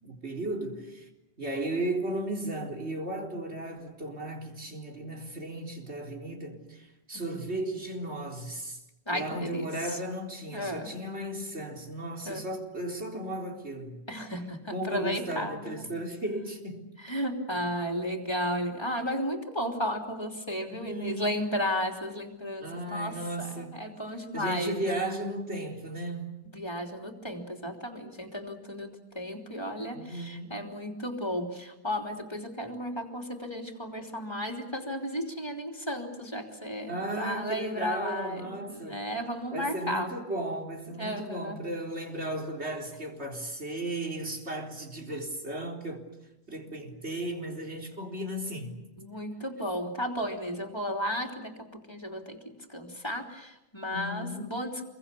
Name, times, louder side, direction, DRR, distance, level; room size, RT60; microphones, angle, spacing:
voice 1, 0.0-1.1 1.4-8.8 9.1-14.0 14.7-16.8 17.5-17.6 20.7-21.3 22.6-23.8 24.3-26.4 29.9-30.7 36.9-39.0 39.5-46.1 46.5-48.7 53.9-54.5, right 1 dB, 80° right, 4.3 m, -35 dB
voice 2, 9.1-9.7 10.5-10.9 12.2-12.4 14.1-15.9 17.0-25.1 26.5-40.1 41.0-41.6 49.0-54.8, equal, 25° left, 3.2 m, -34 dB
28.0 x 23.0 x 7.0 m
omnidirectional pair, 1.1 m